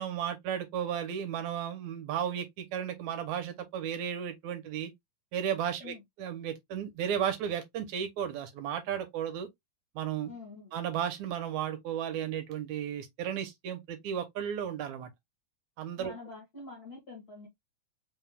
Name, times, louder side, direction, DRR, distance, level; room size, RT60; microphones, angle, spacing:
voice 1, 0.0-4.9 5.3-9.5 10.0-10.3 10.7-15.1 15.8-16.1, right 9 dB, 75° right, 2.0 m, -34 dB
voice 2, 10.3-10.7 16.0-17.5, left 3 dB, 55° left, 1.0 m, -46 dB
5.1 x 2.3 x 3.3 m
omnidirectional pair, 3.6 m